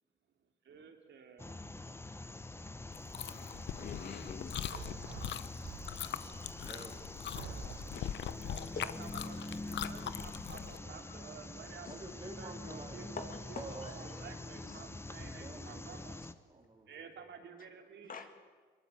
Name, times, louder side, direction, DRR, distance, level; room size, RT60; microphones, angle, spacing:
voice 1, 0.6-1.5 8.0-16.2 16.9-18.3, right 6 dB, 65° right, 5 dB, 3.4 m, -52 dB
sound 1, 1.4-16.3, left 2 dB, 10° left, 1.0 m, -45 dB
Chewing mastication, 2.9-10.8, left 10 dB, 65° left, 1.0 m, -42 dB
voice 2, 3.8-5.2 8.0-8.1 8.8-8.9 11.9-12.0 13.2-13.9 14.7-14.8 18.1-18.3, left 5 dB, 45° left, 7 dB, 1.9 m, -46 dB
sound 2, 4.7-6.2 6.8-6.9 7.4-8.2, right 6 dB, 80° right, 4.0 m, -47 dB
voice 3, 6.6-7.1 11.9-13.1 13.5-14.5 15.4-17.1, right 2 dB, 25° right, 0 dB, 3.2 m, -50 dB
22.0 x 21.0 x 8.5 m, 1.5 s
cardioid pair, 90°, 20 cm